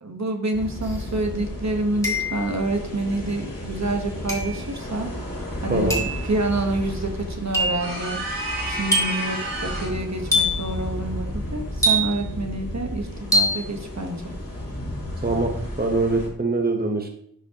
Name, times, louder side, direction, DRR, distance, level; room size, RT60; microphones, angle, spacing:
voice 1, 0.0-5.1 5.6-8.2 8.7-14.3, right 2 dB, 50° right, 4 dB, 1.2 m, -28 dB
sound 1, 0.5-16.3, left 1 dB, 45° left, 2.9 m, -33 dB
sound 2, 0.9-1.0 2.0-2.6 4.3-4.6 5.9-6.2 7.5-7.9 8.9-9.3 10.3-10.7 11.8-12.4 13.3-13.7, equal, 10° left, 2.0 m, -23 dB
sound 3, 7.8-10.1, right 1 dB, 80° right, 3.1 m, -30 dB
voice 2, 15.8-17.1, right 2 dB, 30° right, 3 dB, 1.0 m, -23 dB
11.0 x 5.1 x 2.9 m, 0.68 s
wide cardioid pair, 40°, 34 cm